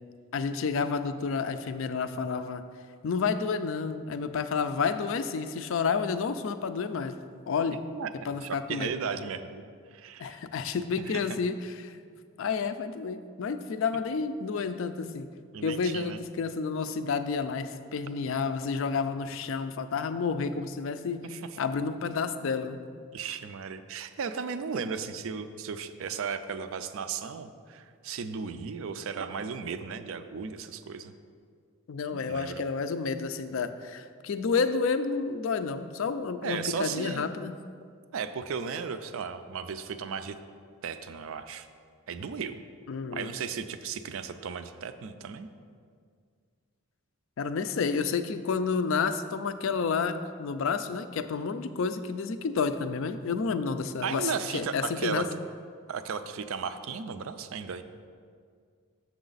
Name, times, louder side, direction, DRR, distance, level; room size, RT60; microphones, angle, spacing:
voice 1, 0.3-2.6 3.0-7.1 7.5-7.8 8.2-8.9 10.2-12.0 12.4-15.3 15.6-21.2 21.6-22.8 31.9-37.5 42.9-43.3 47.4-55.3, left 5 dB, 60° left, 10 dB, 0.4 m, -30 dB
voice 2, 8.4-9.7 9.9-10.4 11.1-11.3 15.5-16.2 21.3-21.4 23.1-31.1 32.1-32.6 36.4-37.2 38.1-40.4 40.8-41.7 42.1-42.6 43.1-45.5 54.0-55.2 55.9-57.8, right 6 dB, 65° right, 10 dB, 0.4 m, -35 dB
7.1 x 6.6 x 4.0 m, 2.1 s
head